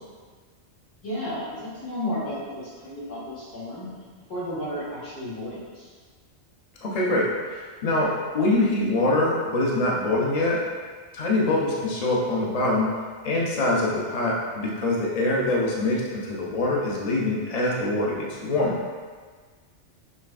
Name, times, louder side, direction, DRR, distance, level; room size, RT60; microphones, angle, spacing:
voice 1, 1.0-3.9 4.3-5.9, left 1 dB, 80° left, -10 dB, 2.0 m, -33 dB
voice 2, 6.8-10.6 11.1-12.9 13.2-18.8, left 2 dB, 40° left, -3 dB, 0.6 m, -24 dB
6.4 x 3.2 x 2.4 m, 1.5 s
omnidirectional pair, 1.3 m